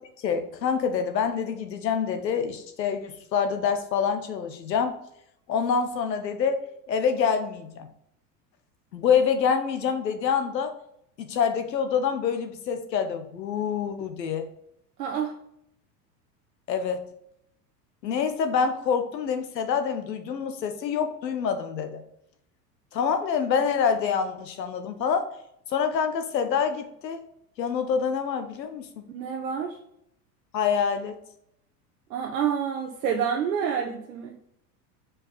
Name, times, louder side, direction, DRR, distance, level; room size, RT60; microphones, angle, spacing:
voice 1, 0.2-5.0 5.5-6.6 6.9-7.9 8.9-10.7 11.2-14.5 16.7-17.0 18.0-22.0 22.9-25.3 25.7-27.2 27.6-29.0 30.5-31.2, left 6 dB, 85° left, 7 dB, 1.1 m, -26 dB
voice 2, 15.0-15.4 29.1-29.8 32.1-34.4, right 7 dB, 80° right, 2 dB, 1.0 m, -28 dB
5.2 x 4.9 x 4.0 m, 0.74 s
hypercardioid pair, 90°, 49 cm